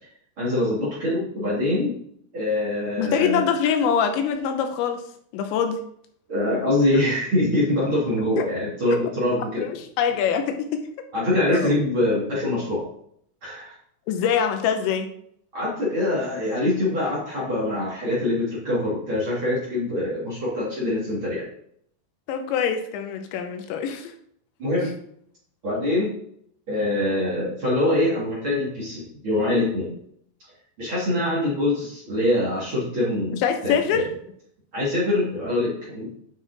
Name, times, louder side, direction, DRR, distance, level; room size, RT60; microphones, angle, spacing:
voice 1, 0.4-2.0 2.3-3.5 6.3-9.6 11.1-12.9 13.4-13.7 15.5-21.5 24.6-24.9 25.6-26.1 26.7-29.9 30.8-34.0 34.7-36.1, left 1 dB, 35° right, -7 dB, 2.7 m, -24 dB
voice 2, 3.0-5.0 5.3-5.8 8.4-8.5 9.5-10.8 11.5-11.7 14.1-15.1 22.3-24.1 33.3-34.1, left 7 dB, 80° left, 6 dB, 3.1 m, -24 dB
9.4 x 5.5 x 4.1 m, 0.67 s
omnidirectional pair, 5.3 m